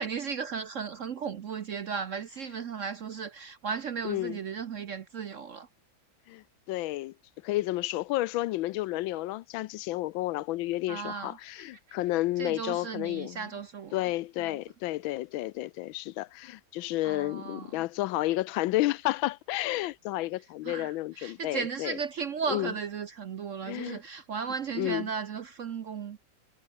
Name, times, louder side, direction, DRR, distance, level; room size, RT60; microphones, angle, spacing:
voice 1, 0.0-5.7 10.9-11.4 12.4-14.0 14.4-14.5 17.0-17.8 20.6-26.2, right 6 dB, 55° right, 0.9 m, -35 dB
voice 2, 4.0-4.4 6.3-7.1 7.4-13.5 13.9-22.0 22.5-22.7 23.7-24.0 24.7-25.1, left 17 dB, 85° left, 1.4 m, -31 dB
Laughter, 11.2-14.2, right 4 dB, 85° right, 4.8 m, -65 dB
omnidirectional pair, 2.1 m